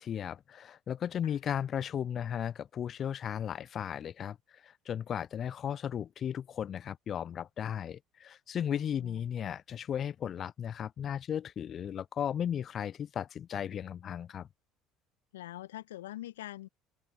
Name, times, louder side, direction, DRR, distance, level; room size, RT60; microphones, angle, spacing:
voice 1, 0.0-4.4 4.6-14.5, left 9 dB, 45° left, 0.4 m, -35 dB
voice 2, 8.7-9.2 15.3-16.7, left 14 dB, 75° left, 1.5 m, -44 dB
open air
figure-of-eight pair, 60°, 0 cm